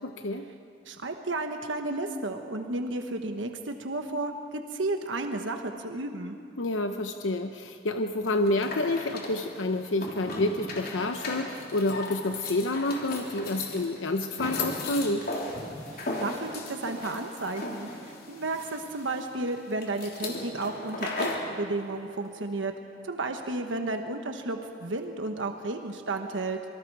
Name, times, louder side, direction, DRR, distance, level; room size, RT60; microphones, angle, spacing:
voice 1, 0.0-0.5 6.6-15.2, left 2 dB, 85° left, 6 dB, 0.8 m, -29 dB
voice 2, 0.9-6.4 15.9-22.7 23.0-26.6, right 2 dB, 85° right, 5 dB, 1.2 m, -33 dB
sound 1, 8.3-21.5, left 2 dB, 50° left, 3.3 m, -37 dB
26.5 x 24.5 x 4.8 m, 2.5 s
head